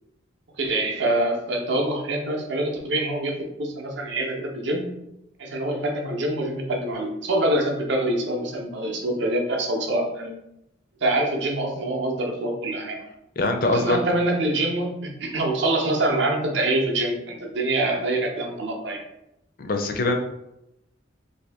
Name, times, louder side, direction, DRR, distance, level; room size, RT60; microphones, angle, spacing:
voice 1, 0.6-5.0 5.4-10.4 11.0-13.0 13.6-19.0, right 1 dB, 65° right, 2 dB, 0.6 m, -25 dB
voice 2, 13.4-14.0 19.6-20.2, left 2 dB, 45° left, 4 dB, 0.4 m, -22 dB
2.7 x 2.6 x 3.4 m, 0.85 s
head